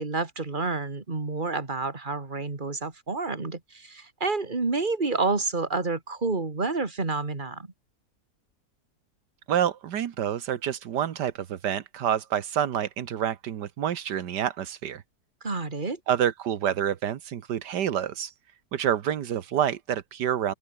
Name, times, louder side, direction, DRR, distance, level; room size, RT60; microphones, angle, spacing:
voice 1, 0.0-7.7 15.4-16.0, right 3 dB, 30° right, 2.7 m, -29 dB
voice 2, 9.5-15.0 16.1-18.3 18.7-20.5, right 9 dB, 85° right, 1.7 m, -28 dB
open air
omnidirectional pair, 1.8 m